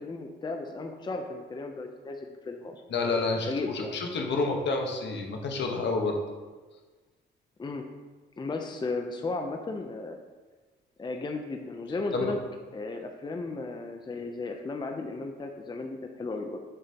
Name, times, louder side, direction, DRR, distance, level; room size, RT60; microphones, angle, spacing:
voice 1, 0.0-2.8 3.4-4.0 7.6-7.8 8.4-10.2 11.0-12.4 12.7-16.6, left 3 dB, 20° left, 4 dB, 0.6 m, -35 dB
voice 2, 2.9-6.2 12.1-12.3, left 3 dB, 65° left, 2 dB, 1.2 m, -29 dB
7.3 x 6.9 x 2.9 m, 1.3 s
cardioid pair, 90°, 20 cm